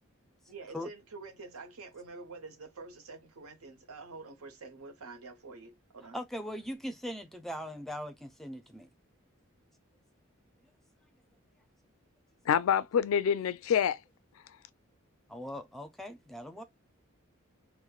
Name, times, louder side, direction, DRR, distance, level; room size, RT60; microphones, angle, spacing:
voice 1, 0.5-6.2, right 3 dB, 85° right, 0.8 m, -47 dB
voice 2, 6.1-8.9 15.3-16.6, equal, ahead, 0.4 m, -40 dB
voice 3, 12.5-14.0, left 8 dB, 70° left, 0.3 m, -26 dB
3.0 x 2.1 x 2.3 m
head